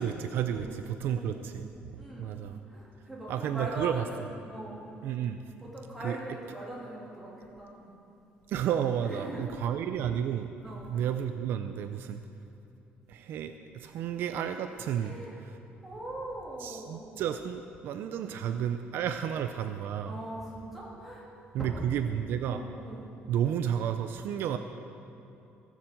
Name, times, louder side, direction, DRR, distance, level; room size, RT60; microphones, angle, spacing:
voice 1, 0.0-2.6 3.3-4.1 5.0-5.4 6.0-6.2 8.5-10.5 10.9-12.2 13.1-15.2 15.4-15.6 16.6-20.1 21.5-22.6 23.3-24.6, right 9 dB, 60° right, 8 dB, 0.5 m, -32 dB
voice 2, 1.1-1.5 2.0-2.4 2.7-4.8 5.6-7.9 9.0-9.5 10.6-10.9 14.9-15.3 15.8-17.1 18.2-18.4 20.0-21.3 21.6-21.9 22.4-23.0, right 1 dB, 5° right, -6 dB, 3.0 m, -41 dB
17.0 x 7.3 x 7.7 m, 2.7 s
cardioid pair, 170°, 4 cm